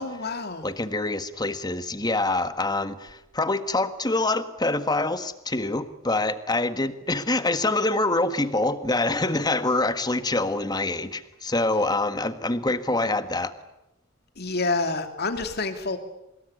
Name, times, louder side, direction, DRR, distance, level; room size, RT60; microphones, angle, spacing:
voice 1, 0.0-0.7 14.4-16.0, left 3 dB, 50° left, 7 dB, 3.0 m, -28 dB
voice 2, 0.6-13.5, left 2 dB, 20° left, 11 dB, 1.6 m, -25 dB
25.0 x 22.0 x 9.8 m, 0.90 s
head